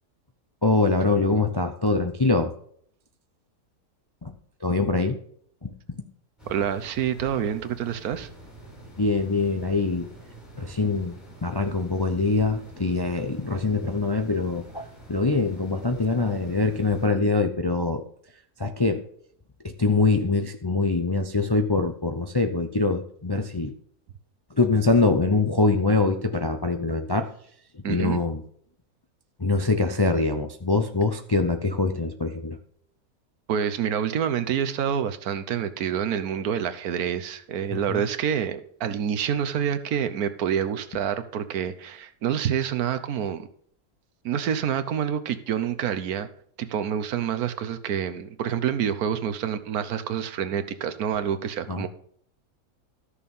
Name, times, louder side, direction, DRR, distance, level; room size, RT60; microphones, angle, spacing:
voice 1, 0.6-2.5 4.2-4.3 4.6-5.2 5.6-5.7 9.0-10.1 10.6-18.0 18.6-19.0 19.8-23.7 24.6-27.3 27.7-28.4 29.4-32.6 37.7-38.0 51.7-51.9, left 3 dB, 30° left, 0.4 m, -24 dB
sound 1, 6.4-17.1, right 1 dB, ahead, 5.2 m, -46 dB
voice 2, 6.5-8.3 27.8-28.2 33.5-43.5 44.2-46.3 46.6-51.9, right 8 dB, 80° right, 1.3 m, -27 dB
13.0 x 6.6 x 5.4 m
omnidirectional pair, 1.6 m